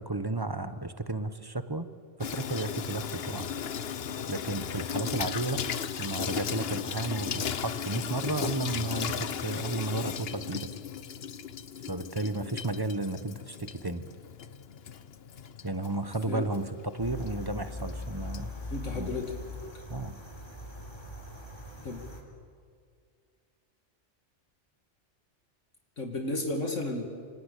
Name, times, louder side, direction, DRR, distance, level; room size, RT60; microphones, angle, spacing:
voice 1, 0.0-1.9 2.2-3.5 4.3-5.7 6.0-10.7 11.9-14.0 15.6-18.5 18.9-19.1 19.9-20.2, right 2 dB, 20° right, 10 dB, 1.0 m, -33 dB
Water tap faucet / Sink (filling or washing), 2.2-19.7, left 7 dB, 55° left, 1.0 m, -37 dB
sound 1, 17.0-22.2, left 1 dB, 20° left, 3.5 m, -41 dB
voice 2, 18.7-19.4 19.7-19.8 21.8-22.1 26.0-27.0, left 2 dB, 75° left, 3 dB, 2.6 m, -33 dB
27.0 x 26.0 x 8.4 m, 2.2 s
omnidirectional pair, 1.3 m